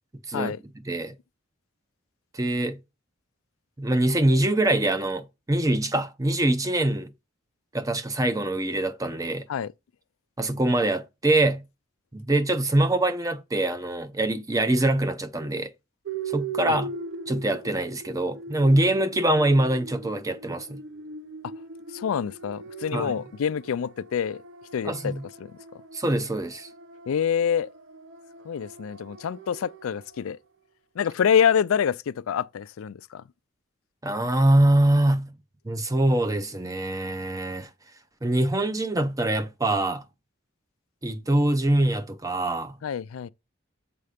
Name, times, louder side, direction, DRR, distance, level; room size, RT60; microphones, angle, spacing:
voice 1, 2.3-2.8 3.8-7.1 7.7-9.5 10.4-11.6 12.1-15.7 16.3-16.9 17.3-20.8 22.9-23.1 24.8-25.2 25.9-26.7 34.0-35.3 35.7-37.7 38.2-40.0 41.0-42.8, right 1 dB, 15° right, 0.5 m, -24 dB
sound 1, 16.1-30.3, right 4 dB, 60° right, 0.8 m, -40 dB
voice 2, 21.9-24.4 24.7-25.5 27.1-27.7 28.4-30.4 31.0-33.2 42.8-43.3, left 8 dB, 80° left, 0.4 m, -26 dB
6.8 x 4.1 x 5.0 m
head